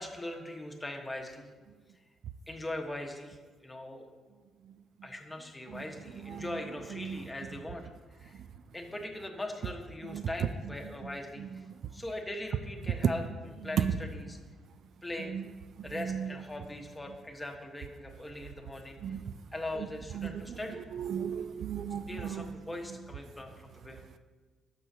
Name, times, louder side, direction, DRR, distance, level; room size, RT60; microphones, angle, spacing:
voice 1, 0.0-1.5 2.5-4.1 5.0-7.8 8.1-8.4 8.7-11.7 11.9-13.2 13.6-14.4 15.0-15.3 15.8-19.2 19.5-20.8 22.1-24.2, left 1 dB, 15° left, 1.2 m, -40 dB
voice 2, 6.2-6.6 6.9-7.2 10.1-10.3 11.4-11.5 13.7-13.9 15.3-15.5 15.8-16.3 19.0-19.2 19.8-19.9 20.1-20.6 20.9-22.5, right 8 dB, 65° right, 0.3 m, -35 dB
12.0 x 6.4 x 2.8 m
cardioid pair, 90°, 0 cm